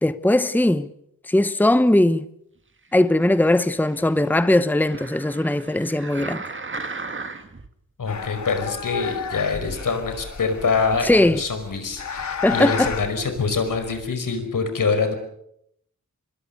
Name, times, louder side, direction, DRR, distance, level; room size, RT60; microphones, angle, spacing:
voice 1, 0.0-0.9 1.3-2.3 2.9-6.4 11.0-11.4 12.4-12.9, left 1 dB, 5° left, 0.9 m, -19 dB
sound 1, 3.1-7.7 8.3-8.4, right 3 dB, 40° right, 2.1 m, -37 dB
voice 2, 8.0-15.1, left 4 dB, 80° left, 5.2 m, -25 dB
sound 2, 8.1-14.1, left 6 dB, 60° left, 2.1 m, -32 dB
26.0 x 21.5 x 6.8 m
wide cardioid pair, 70°, 32 cm